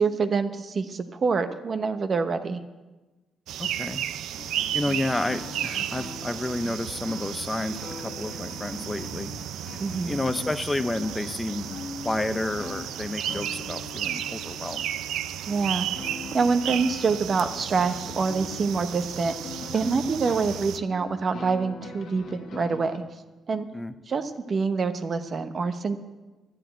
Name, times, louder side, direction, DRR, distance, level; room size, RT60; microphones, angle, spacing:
voice 1, 0.0-2.6 9.8-10.2 15.5-15.9 16.3-19.3 19.7-23.0 23.5-23.7 24.1-26.0, right 4 dB, 45° right, 9 dB, 1.0 m, -26 dB
sound 1, 3.5-20.8, right 11 dB, 80° right, 0.4 m, -34 dB
voice 2, 3.6-4.1 4.7-9.3 10.0-11.7 12.0-14.9 23.7-23.9, left 2 dB, 15° left, 10 dB, 0.6 m, -30 dB
sound 2, 4.4-23.0, left 5 dB, 60° left, 1.3 m, -42 dB
12.0 x 8.0 x 9.1 m, 1.2 s
cardioid pair, 90°, 0 cm